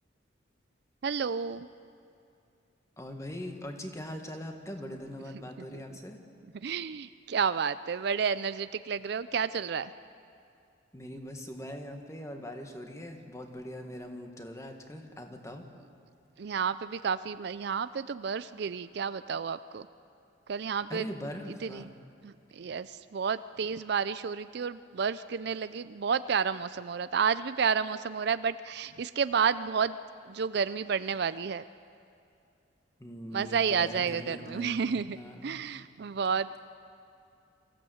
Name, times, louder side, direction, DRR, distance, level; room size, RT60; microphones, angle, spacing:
voice 1, 1.0-1.7 5.3-5.4 6.6-9.9 16.4-19.9 20.5-21.1 21.6-21.8 22.2-30.0 30.3-31.6 33.3-35.2 35.4-36.6, right 6 dB, 60° right, 14 dB, 0.4 m, -31 dB
voice 2, 3.0-6.2 10.9-15.6 20.9-21.9 33.0-35.6, equal, 15° left, 4 dB, 1.6 m, -41 dB
24.0 x 15.0 x 7.9 m, 2.6 s
head